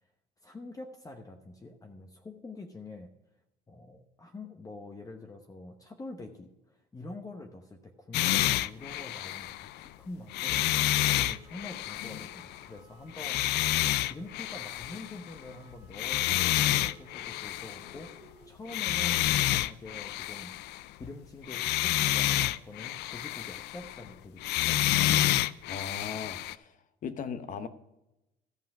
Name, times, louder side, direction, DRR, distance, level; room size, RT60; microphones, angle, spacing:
voice 1, 0.4-3.1 3.7-10.6 11.1-13.6 14.1-20.5 21.0-25.2, left 2 dB, 20° left, 1.0 m, -46 dB
sound 1, 8.1-9.9 10.3-12.7 13.1-15.5 15.8-18.1 18.7-21.1 21.4-24.1 24.4-26.5, left 14 dB, 80° left, 0.4 m, -29 dB
sound 2, 10.5-18.5, equal, 35° right, 1.6 m, -58 dB
voice 2, 25.7-26.7 27.0-27.7, left 6 dB, 50° left, 1.0 m, -38 dB
14.0 x 5.7 x 6.0 m
cardioid pair, 110°, 17 cm